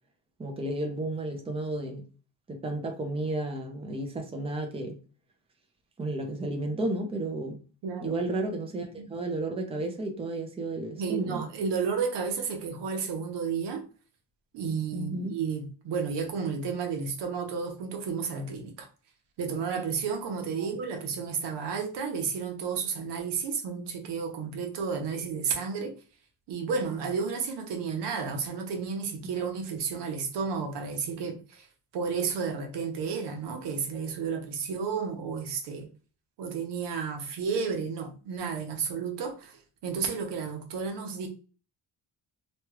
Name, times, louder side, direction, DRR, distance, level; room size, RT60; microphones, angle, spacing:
voice 1, 0.4-2.0 2.5-5.0 6.0-7.6 8.0-11.5 14.9-15.3 20.6-20.7, right 2 dB, 15° right, 0.6 m, -32 dB
voice 2, 7.8-8.2 9.0-9.1 11.0-13.9 14.5-18.9 19.4-25.9 26.5-31.7 31.9-35.9 36.4-41.3, right 5 dB, 80° right, 0.9 m, -32 dB
3.1 x 2.4 x 3.0 m
cardioid pair, 125°, 41 cm